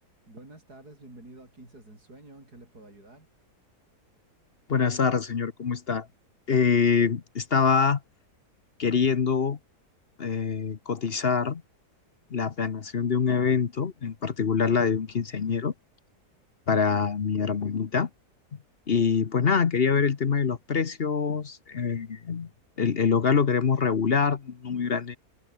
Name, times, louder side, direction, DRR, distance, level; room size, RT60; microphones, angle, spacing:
voice 1, 0.3-3.3, right 2 dB, 70° right, 8.2 m, -49 dB
voice 2, 4.7-6.1 6.5-8.0 8.8-9.6 10.2-11.6 12.3-15.7 16.7-18.1 18.5-18.6 18.9-22.5 22.8-25.2, left 6 dB, 40° left, 1.1 m, -25 dB
omnidirectional pair, 1.7 m